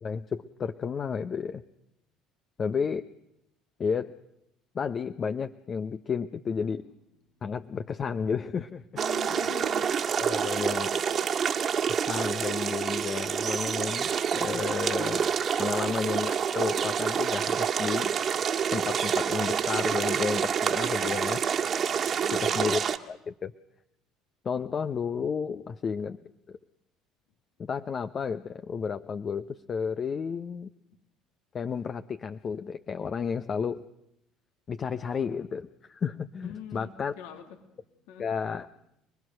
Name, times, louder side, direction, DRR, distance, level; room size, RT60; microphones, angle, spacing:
voice 1, 0.0-1.6 2.6-3.1 3.8-4.2 4.7-6.9 7.4-8.8 10.2-10.9 11.9-18.2 18.7-21.4 22.3-23.5 24.4-26.2 26.5-26.6 27.6-30.7 31.5-33.8 34.7-37.1 38.2-38.7, left 6 dB, 40° left, 10 dB, 0.9 m, -32 dB
voice 2, 8.9-9.9 10.9-11.3 20.9-21.5 22.2-22.7 36.4-37.6 38.1-38.3, left 8 dB, 80° left, 5 dB, 2.5 m, -45 dB
sound 1, 9.0-23.0, right 7 dB, 45° right, 1.8 m, -28 dB
29.0 x 20.5 x 6.5 m, 0.81 s
hypercardioid pair, 70°, 0 cm